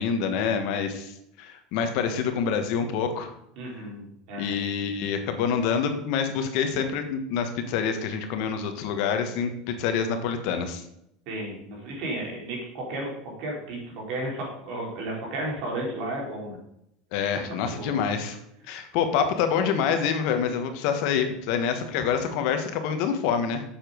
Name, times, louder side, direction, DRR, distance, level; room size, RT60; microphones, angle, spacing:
voice 1, 0.0-3.3 4.4-10.8 17.1-18.4 18.7-23.6, left 7 dB, 60° left, 7 dB, 1.4 m, -26 dB
voice 2, 3.6-4.6 11.3-13.1 13.4-16.6 17.6-18.0, right 1 dB, 60° right, -2 dB, 4.1 m, -33 dB
7.6 x 7.3 x 5.1 m, 0.77 s
supercardioid pair, 135°, 0 cm